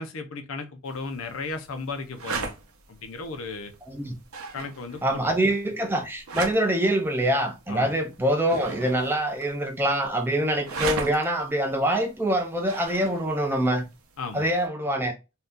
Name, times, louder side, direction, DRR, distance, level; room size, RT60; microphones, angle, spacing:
voice 1, 0.0-2.5 2.9-3.7 4.5-5.3 7.7-8.0 14.2-14.5, left 3 dB, 70° left, 0.6 m, -35 dB
sound 1, 0.9-14.7, right 4 dB, 90° right, 0.7 m, -39 dB
voice 2, 5.0-13.9 14.3-15.1, right 1 dB, 10° right, 0.5 m, -25 dB
2.7 x 2.3 x 3.5 m
head